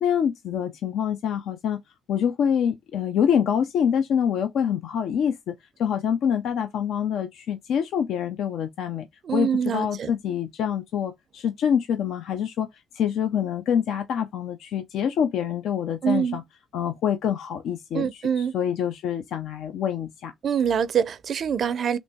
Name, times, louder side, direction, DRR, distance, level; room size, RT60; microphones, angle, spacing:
voice 1, 0.0-1.8 2.1-5.5 5.8-12.7 12.9-16.4 16.7-20.3, left 8 dB, 80° left, 0.4 m, -26 dB
voice 2, 9.3-10.1 16.0-16.4 17.9-18.5 20.4-22.0, right 8 dB, 55° right, 0.4 m, -24 dB
3.2 x 3.0 x 2.7 m
cardioid pair, 90°, 0 cm